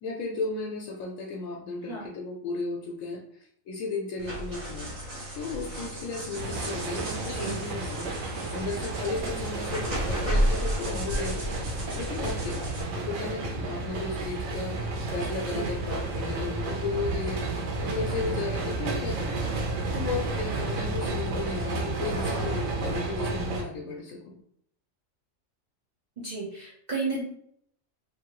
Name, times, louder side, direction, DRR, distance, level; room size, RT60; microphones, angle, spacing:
voice 1, 0.0-4.9 5.3-11.4 11.9-12.7 12.9-14.8 15.1-17.4 17.8-19.6 19.9-24.4, left 3 dB, 85° left, 0 dB, 1.0 m, -34 dB
sound 1, 4.2-12.8, equal, 65° right, 1.5 m, -32 dB
sound 2, 6.3-23.6, right 3 dB, 90° right, 1.1 m, -32 dB
voice 2, 7.3-7.6 15.5-15.7 26.2-27.2, right 3 dB, 40° right, -7 dB, 0.8 m, -33 dB
2.7 x 2.7 x 2.9 m, 0.68 s
omnidirectional pair, 1.4 m